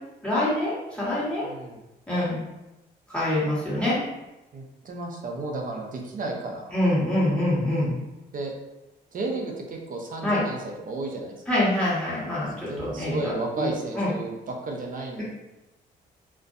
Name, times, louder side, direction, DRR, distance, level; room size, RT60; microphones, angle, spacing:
voice 1, 0.2-1.5 2.1-2.4 3.1-4.0 6.7-8.0 10.2-10.4 11.5-13.7 13.9-14.1 15.2-15.3, left 1 dB, 5° left, -8 dB, 1.3 m, -25 dB
voice 2, 1.4-1.8 4.5-6.7 8.3-8.5 9.1-11.3 12.7-15.2, right 2 dB, 50° right, 1 dB, 0.6 m, -33 dB
2.5 x 2.2 x 2.5 m, 0.99 s
supercardioid pair, 70°, 18 cm